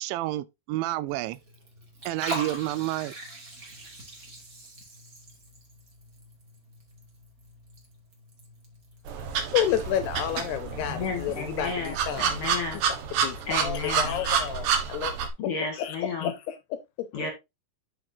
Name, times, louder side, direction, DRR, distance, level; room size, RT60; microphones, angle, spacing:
voice 1, 0.0-1.4 2.1-3.1, right 16 dB, 85° right, 2.9 m, -29 dB
Liquid, 1.1-12.5, right 2 dB, 25° right, 2.1 m, -43 dB
sound 1, 9.1-15.3, right 7 dB, 70° right, 3.4 m, -29 dB
voice 2, 9.5-12.4 13.2-15.1 15.7-17.1, left 10 dB, 75° left, 2.6 m, -30 dB
voice 3, 10.7-12.8 13.5-14.2 15.4-16.3 17.1-17.3, left 4 dB, 45° left, 2.1 m, -32 dB
10.5 x 6.1 x 2.8 m
omnidirectional pair, 5.2 m